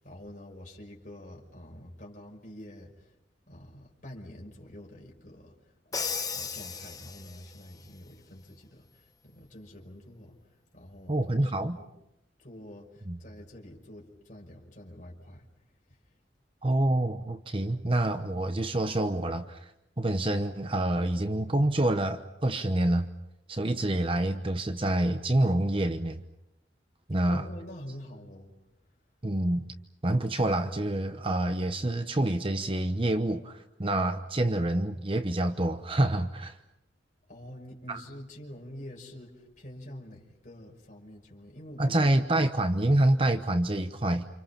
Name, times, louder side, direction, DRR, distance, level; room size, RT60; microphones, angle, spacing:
voice 1, 0.0-3.1 3.5-5.6 5.8-10.3 10.7-11.9 12.4-15.5 27.3-28.5 37.3-42.0, left 1 dB, 45° left, 5.8 m, -47 dB
Crash cymbal, 5.9-7.6, left 5 dB, 20° left, 1.0 m, -35 dB
voice 2, 11.1-11.8 13.1-13.2 16.6-19.7 20.0-23.1 23.5-26.2 27.1-27.5 29.2-29.7 30.0-36.6 37.9-38.0 41.8-44.2, right 1 dB, 30° right, 0.9 m, -27 dB
29.5 x 28.0 x 5.9 m
head